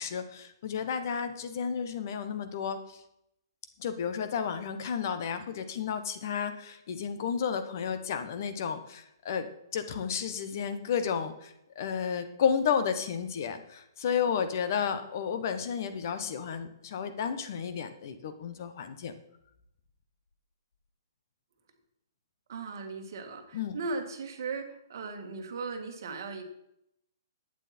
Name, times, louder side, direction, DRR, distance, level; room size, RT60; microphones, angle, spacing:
voice 1, 0.0-3.0 3.8-19.1 23.5-23.8, left 7 dB, 45° left, 10 dB, 1.1 m, -32 dB
voice 2, 22.5-26.4, right 4 dB, 55° right, 5 dB, 2.0 m, -37 dB
11.5 x 9.0 x 4.4 m, 0.79 s
hypercardioid pair, 165°, 2 cm